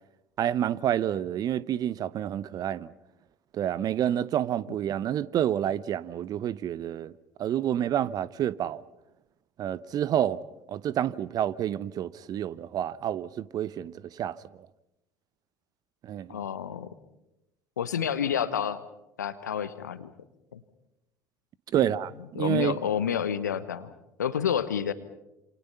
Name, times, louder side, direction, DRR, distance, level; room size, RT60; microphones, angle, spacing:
voice 1, 0.4-2.9 3.5-7.1 7.4-8.8 9.6-10.4 10.7-14.4 16.0-16.4 21.7-22.8, right 10 dB, 45° right, 0.8 m, -28 dB
voice 2, 16.3-16.9 17.8-18.8 19.2-20.1 20.5-20.6 21.7-21.9 22.3-23.9 24.2-24.9, left 8 dB, 80° left, 1.2 m, -29 dB
27.5 x 27.5 x 5.7 m
figure-of-eight pair, 65°, 9 cm